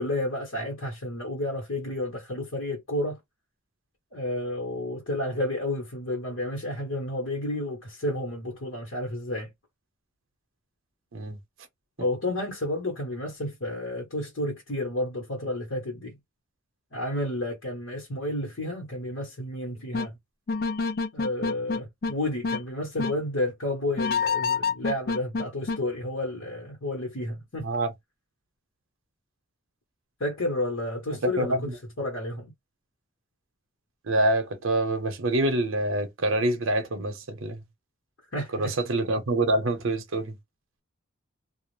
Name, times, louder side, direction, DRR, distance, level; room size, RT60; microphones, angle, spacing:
voice 1, 0.0-3.2 4.1-9.5 12.0-16.1 16.9-20.1 21.1-27.7 30.2-31.7 32.0-32.5 38.3-38.7, left 1 dB, 80° left, 1.1 m, -31 dB
sound 1, 19.9-20.1 20.5-22.1 22.4-22.6 23.0-23.1 24.0-25.8, left 5 dB, 50° left, 0.4 m, -27 dB
voice 2, 27.6-27.9 31.2-31.8 34.0-37.6 38.5-40.4, right 1 dB, 75° right, 0.7 m, -26 dB
2.3 x 2.0 x 3.0 m
head